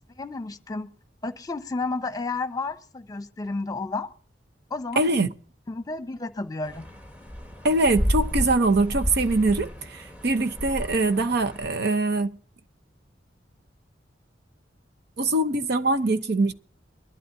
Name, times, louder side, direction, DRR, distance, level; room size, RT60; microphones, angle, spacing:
voice 1, 0.2-0.9 1.2-4.1 4.7-5.1 5.7-6.8, left 3 dB, 20° left, 0.9 m, -31 dB
voice 2, 5.0-5.3 7.6-12.4 15.2-16.5, right 2 dB, 60° right, 0.8 m, -23 dB
sound 1, 6.6-11.7, equal, 10° right, 1.5 m, -31 dB
23.5 x 12.0 x 2.7 m
head